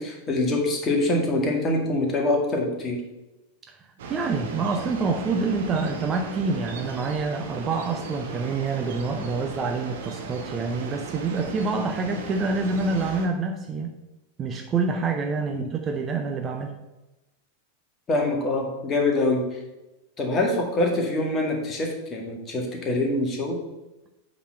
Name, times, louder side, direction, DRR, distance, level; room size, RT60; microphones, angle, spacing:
voice 1, 0.0-3.0 15.5-15.7 18.1-19.6 20.2-23.6, left 2 dB, 25° left, 1 dB, 1.9 m, -25 dB
sound 1, 4.0-13.3, right 4 dB, 55° right, 1.3 m, -37 dB
voice 2, 4.1-13.9 14.4-16.7, right 4 dB, 25° right, 4 dB, 0.7 m, -27 dB
8.3 x 4.1 x 5.7 m, 1.0 s
figure-of-eight pair, 90°, 0 cm